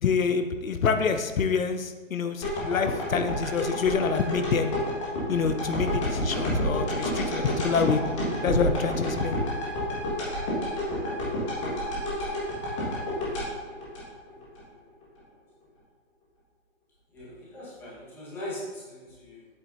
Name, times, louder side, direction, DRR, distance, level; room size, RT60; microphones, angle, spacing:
voice 1, 0.0-4.7 5.3-8.0 8.4-9.4, left 5 dB, 75° left, 8 dB, 0.7 m, -26 dB
sound 1, 2.4-14.6 15.0-15.1, equal, 20° left, 1.7 m, -29 dB
voice 2, 14.3-14.8 15.3-15.4 17.1-19.5, left 1 dB, 5° left, -9 dB, 1.3 m, -41 dB
8.0 x 7.5 x 2.7 m, 1.3 s
hypercardioid pair, 160°, 41 cm